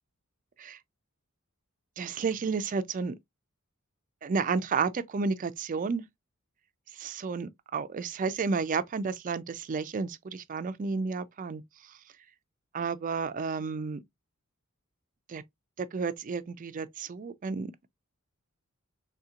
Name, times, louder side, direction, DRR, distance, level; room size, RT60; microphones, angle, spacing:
voice 1, 2.0-3.2 4.2-6.1 7.0-11.6 12.7-14.0 15.3-15.4 15.8-17.7, right 5 dB, 35° right, 0.4 m, -31 dB
3.5 x 2.8 x 2.4 m
head